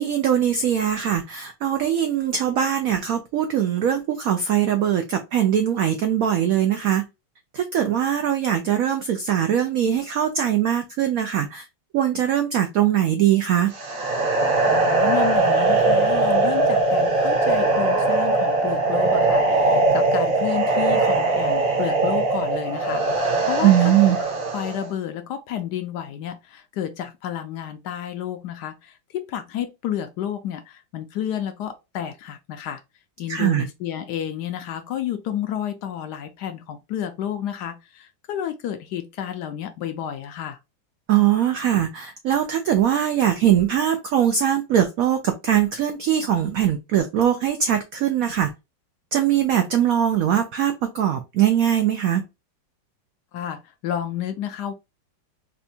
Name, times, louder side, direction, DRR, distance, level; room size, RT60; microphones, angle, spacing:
voice 1, 0.0-7.0 7.5-11.6 11.9-13.7 23.6-24.2 33.3-33.7 41.1-48.5 49.1-52.2, right 10 dB, 85° right, 0.7 m, -21 dB
sound 1, 13.7-24.9, right 2 dB, 45° right, 0.8 m, -20 dB
voice 2, 14.6-32.8 33.2-40.6 53.3-54.7, left 10 dB, 75° left, 1.0 m, -31 dB
4.2 x 2.2 x 2.7 m
omnidirectional pair, 2.0 m